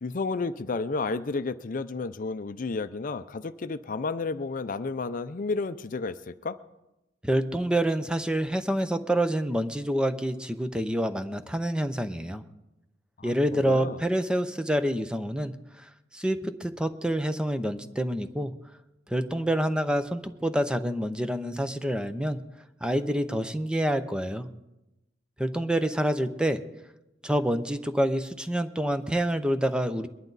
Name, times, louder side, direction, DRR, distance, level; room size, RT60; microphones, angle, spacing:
voice 1, 0.0-6.6 13.2-14.0, left 3 dB, 45° left, 12 dB, 0.5 m, -32 dB
voice 2, 7.2-12.4 13.2-18.5 19.1-22.4 22.8-24.5 25.4-26.6 27.2-30.1, right 1 dB, 5° right, 9 dB, 0.6 m, -27 dB
22.0 x 11.0 x 4.0 m, 0.97 s
head